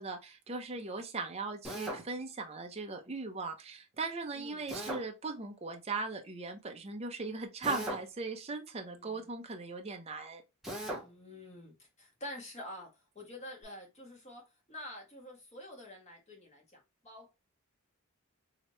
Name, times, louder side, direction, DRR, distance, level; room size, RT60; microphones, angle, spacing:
voice 1, 0.0-10.4, right 3 dB, 30° right, 0.6 m, -39 dB
voice 2, 0.7-1.0 4.3-4.6 8.9-9.3 11.0-17.3, left 1 dB, 30° left, 1.5 m, -48 dB
Drill, 1.6-2.0 4.7-5.0 7.6-8.1 10.6-11.0, right 1 dB, ahead, 0.8 m, -38 dB
3.2 x 2.8 x 3.0 m
head